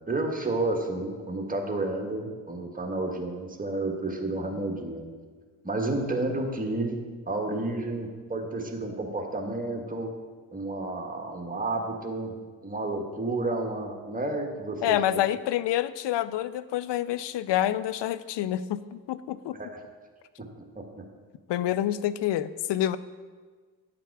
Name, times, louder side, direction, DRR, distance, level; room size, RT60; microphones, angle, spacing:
voice 1, 0.1-5.1 5.6-7.0 7.3-10.1 10.5-15.0 19.5-19.8 20.7-20.8, right 2 dB, 15° right, 2 dB, 1.6 m, -31 dB
voice 2, 14.8-19.6 21.5-23.0, left 12 dB, 65° left, 15 dB, 0.6 m, -27 dB
9.7 x 5.8 x 4.7 m, 1.5 s
hypercardioid pair, 40°, 47 cm